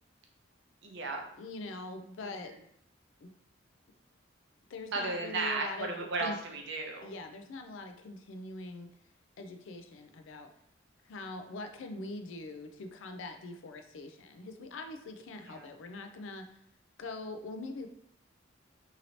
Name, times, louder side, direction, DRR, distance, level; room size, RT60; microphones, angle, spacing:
voice 1, 0.8-1.2 2.4-2.5 4.9-7.1 15.5-15.7, right 3 dB, 65° right, 2 dB, 0.6 m, -34 dB
voice 2, 1.4-2.5 3.2-3.3 4.7-6.4 7.0-8.9 9.4-10.5 11.1-16.5 17.0-17.9, left 2 dB, 75° left, 6 dB, 0.4 m, -43 dB
2.9 x 2.7 x 2.8 m, 0.69 s
head